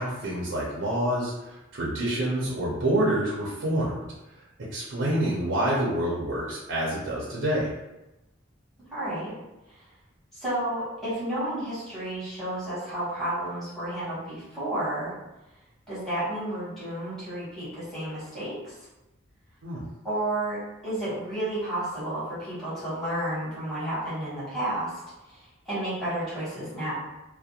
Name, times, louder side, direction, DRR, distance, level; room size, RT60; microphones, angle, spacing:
voice 1, 0.0-4.1 4.7-7.7 19.6-19.8, right 1 dB, 70° right, -6 dB, 0.5 m, -27 dB
voice 2, 8.9-9.3 9.7-9.9 10.3-15.2 15.9-18.8 20.0-25.0 25.3-26.9, right 1 dB, ahead, -13 dB, 1.1 m, -31 dB
2.4 x 2.1 x 2.7 m, 0.97 s
head